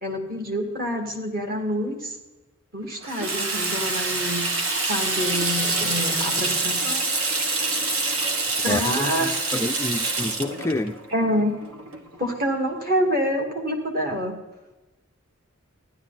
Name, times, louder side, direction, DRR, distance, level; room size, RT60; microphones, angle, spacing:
voice 1, 0.0-2.1 2.7-4.4 4.9-7.0 8.6-9.3 11.1-11.6 12.2-14.3, equal, 45° right, 2 dB, 2.4 m, -26 dB
Water tap faucet / Sink (filling or washing), 3.0-12.3, right 3 dB, 75° right, 1.6 m, -26 dB
sound 1, 3.1-7.3, right 2 dB, 60° right, 1.8 m, -33 dB
voice 2, 8.7-11.0, left 1 dB, 15° left, 6 dB, 0.3 m, -28 dB
15.0 x 11.0 x 4.1 m, 1.1 s
head